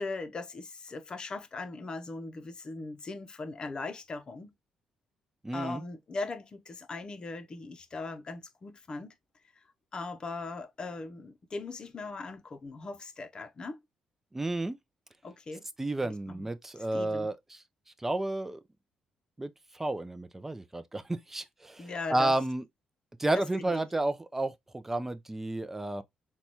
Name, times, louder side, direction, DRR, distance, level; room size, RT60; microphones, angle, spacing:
voice 1, 0.0-4.5 5.5-9.1 9.9-13.8 15.2-15.6 16.0-16.5 16.9-17.3 21.8-22.3 23.3-23.8, left 3 dB, 40° left, 0.7 m, -39 dB
voice 2, 5.4-5.8 14.3-14.8 15.8-17.6 18.0-18.6 19.4-22.6 23.2-26.0, right 2 dB, 15° right, 0.5 m, -31 dB
3.9 x 2.3 x 2.9 m
supercardioid pair, 70°, 2 cm